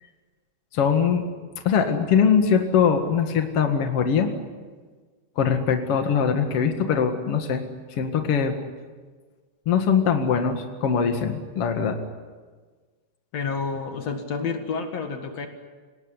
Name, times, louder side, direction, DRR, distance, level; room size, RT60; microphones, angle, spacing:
voice 1, 0.7-1.2 1.6-4.3 5.3-7.6 7.9-8.6 9.6-12.0, left 7 dB, 90° left, 5 dB, 1.3 m, -22 dB
voice 2, 13.3-15.5, left 5 dB, 65° left, 5 dB, 1.6 m, -29 dB
28.5 x 19.0 x 9.8 m, 1.4 s
omnidirectional pair, 5.9 m